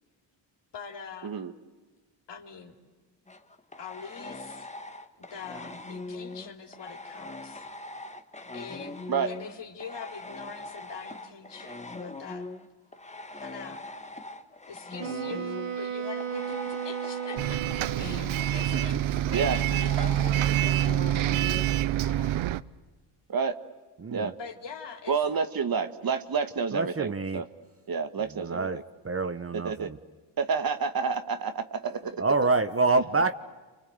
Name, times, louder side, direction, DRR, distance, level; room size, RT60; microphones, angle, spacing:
voice 1, 0.7-1.3 2.3-2.7 3.8-4.7 5.2-7.6 8.5-9.0 9.2-12.5 13.4-13.9 14.7-22.4 24.4-25.2 32.0-32.2, left 6 dB, 55° left, 4 dB, 3.8 m, -43 dB
sound 1, 3.3-9.5 9.8-22.2, left 2 dB, 15° left, 1.8 m, -41 dB
Wind instrument woodwind instrument, 15.0-18.5, right 8 dB, 85° right, 2.4 m, -35 dB
Bus, 17.4-22.6, right 12 dB, 70° right, 0.9 m, -26 dB
voice 2, 24.0-24.3 26.7-27.4 28.4-28.8 29.0-30.0 32.2-33.3, right 3 dB, 25° right, 11 dB, 1.2 m, -26 dB
voice 3, 25.1-27.5 27.9-28.8 29.5-29.9 30.4-32.2, right 5 dB, 45° right, 9 dB, 1.8 m, -29 dB
28.5 x 25.0 x 8.0 m, 1.3 s
supercardioid pair, 65°, 50 cm